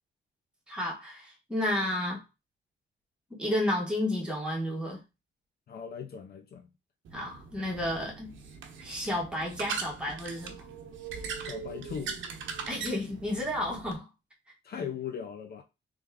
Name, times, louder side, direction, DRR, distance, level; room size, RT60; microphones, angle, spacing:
voice 1, 0.7-2.2 3.3-5.0 7.1-8.4 8.8-10.6 12.7-14.0, left 1 dB, 5° right, 1.6 m, -31 dB
voice 2, 5.7-6.7 11.4-12.2 14.6-15.6, left 7 dB, 55° left, 0.6 m, -38 dB
sound 1, 7.0-14.0, right 6 dB, 85° right, 0.9 m, -40 dB
3.5 x 3.3 x 3.5 m
wide cardioid pair, 155°, 20 cm